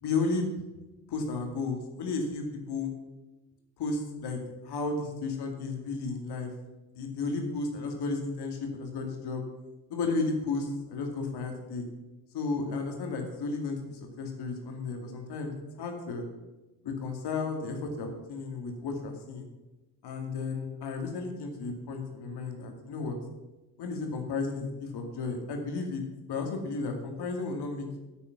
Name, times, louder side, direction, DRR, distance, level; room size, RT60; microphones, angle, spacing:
voice 1, 0.0-0.5 1.1-2.9 3.8-6.5 6.9-9.4 9.9-11.9 12.3-16.3 16.8-19.5 20.0-23.2 23.8-28.0, left 3 dB, 55° left, 3 dB, 2.4 m, -33 dB
8.8 x 8.8 x 6.0 m, 1.1 s
hypercardioid pair, 55°, 47 cm